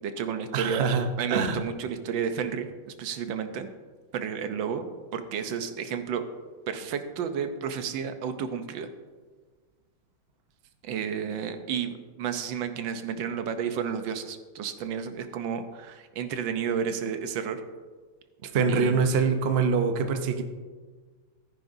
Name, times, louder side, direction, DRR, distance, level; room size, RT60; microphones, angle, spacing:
voice 1, 0.0-0.9 1.2-3.7 4.1-6.2 6.7-8.9 10.8-17.6 18.7-19.0, right 7 dB, 80° right, 8 dB, 1.5 m, -31 dB
voice 2, 0.5-1.6 18.4-20.4, right 5 dB, 60° right, 7 dB, 0.6 m, -24 dB
14.5 x 9.7 x 2.7 m, 1.4 s
omnidirectional pair, 2.1 m